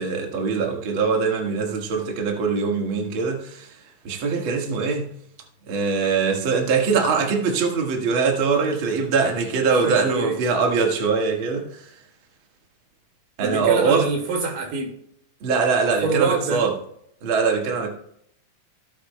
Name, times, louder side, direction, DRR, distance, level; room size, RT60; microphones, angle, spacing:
voice 1, 0.0-3.7 4.0-5.1 5.7-11.7 13.4-14.1 15.4-16.7 17.2-17.9, right 5 dB, 45° right, 2.0 m, -22 dB
voice 2, 9.8-10.4 13.4-14.9 16.0-16.6, right 4 dB, 90° right, 3.7 m, -25 dB
17.0 x 8.4 x 2.2 m
omnidirectional pair, 3.8 m